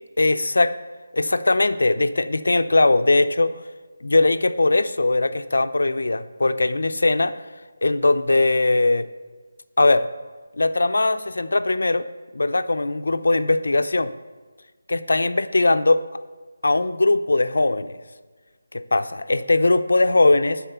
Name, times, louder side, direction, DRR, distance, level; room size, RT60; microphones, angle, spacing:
voice 1, 0.2-0.8 1.1-3.6 4.0-7.3 7.8-9.1 9.8-10.1 10.6-12.1 12.3-14.1 14.9-16.1 16.6-18.0 18.7-20.6, left 2 dB, 80° left, 11 dB, 0.5 m, -20 dB
10.0 x 4.3 x 6.7 m, 1.4 s
figure-of-eight pair, 175°, 0 cm